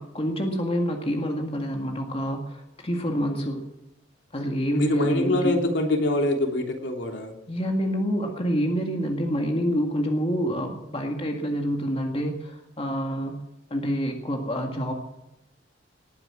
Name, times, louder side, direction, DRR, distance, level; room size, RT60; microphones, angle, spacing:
voice 1, 0.0-3.6 4.3-5.6 7.5-13.4 13.7-14.9, equal, 30° left, 3 dB, 1.9 m, -27 dB
voice 2, 4.7-7.3, left 1 dB, 70° left, 2 dB, 3.2 m, -24 dB
19.0 x 9.6 x 7.4 m, 0.92 s
head